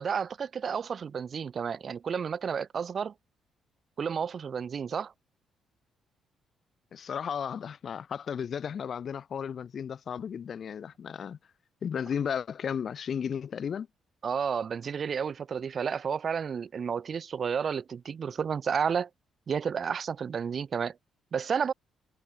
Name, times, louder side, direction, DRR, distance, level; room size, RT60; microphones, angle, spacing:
voice 1, 0.0-3.1 4.0-5.1 14.2-19.1 19.5-21.0 21.3-21.7, right 6 dB, 50° right, 0.5 m, -31 dB
voice 2, 6.9-11.4 11.8-13.9, left 7 dB, 55° left, 2.6 m, -34 dB
cardioid pair, 90°, 0 cm